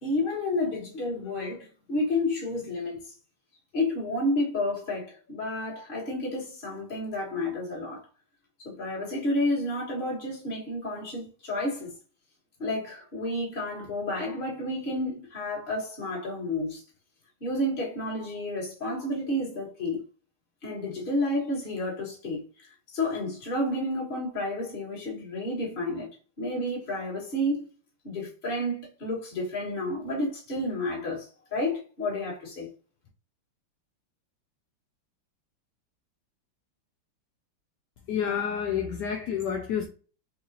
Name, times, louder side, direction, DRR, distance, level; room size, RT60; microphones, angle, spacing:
voice 1, 0.0-3.0 3.7-8.0 8.6-11.9 12.6-16.8 17.4-20.0 20.6-26.1 26.4-27.7 28.0-32.7, left 1 dB, 30° left, 1.5 m, -30 dB
voice 2, 38.1-39.9, left 8 dB, 80° left, 0.9 m, -29 dB
5.7 x 2.3 x 2.7 m
omnidirectional pair, 2.3 m